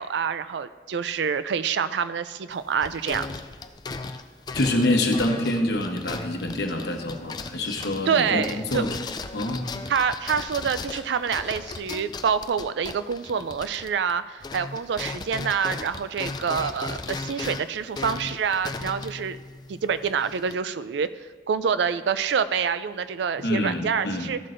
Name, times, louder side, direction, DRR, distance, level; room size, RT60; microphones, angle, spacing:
voice 1, 0.0-3.3 8.1-8.8 9.9-19.4 19.7-21.1 21.5-24.4, right 6 dB, 75° right, 13 dB, 0.4 m, -27 dB
sound 1, 2.5-14.1 14.4-20.5, left 3 dB, 25° left, 0.3 m, -37 dB
voice 2, 4.5-8.9 9.3-9.7 23.4-24.3, left 1 dB, 65° left, 3 dB, 1.0 m, -26 dB
13.5 x 7.5 x 2.6 m, 1.5 s
head